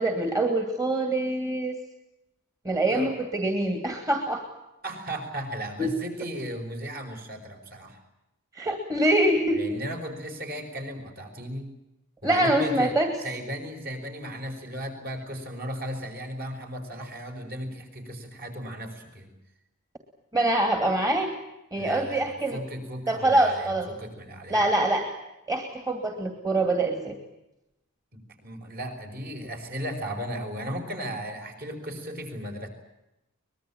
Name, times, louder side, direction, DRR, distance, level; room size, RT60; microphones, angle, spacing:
voice 1, 0.0-1.8 2.6-4.4 5.8-5.9 8.5-9.8 12.2-13.1 20.3-21.3 21.7-22.6 23.1-23.9 24.5-25.1 25.5-27.1, right 1 dB, 15° right, 5 dB, 2.5 m, -24 dB
voice 2, 4.8-8.0 9.5-11.7 12.2-12.9 13.2-19.3 21.8-24.6 28.1-32.7, equal, 45° right, 3 dB, 5.7 m, -36 dB
24.5 x 21.0 x 8.9 m, 0.90 s
head